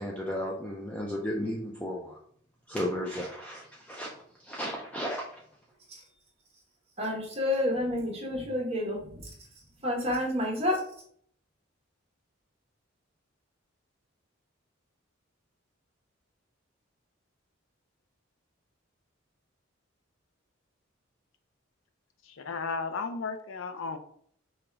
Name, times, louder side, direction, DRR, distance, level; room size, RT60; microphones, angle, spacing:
voice 1, 0.0-2.2 2.7-4.1 4.4-5.3, equal, 5° left, -2 dB, 0.4 m, -34 dB
voice 2, 7.0-9.3 9.8-10.8, left 1 dB, 30° right, -2 dB, 1.2 m, -29 dB
voice 3, 22.3-24.0, left 4 dB, 70° left, 7 dB, 0.5 m, -34 dB
5.2 x 2.4 x 3.4 m, 0.63 s
head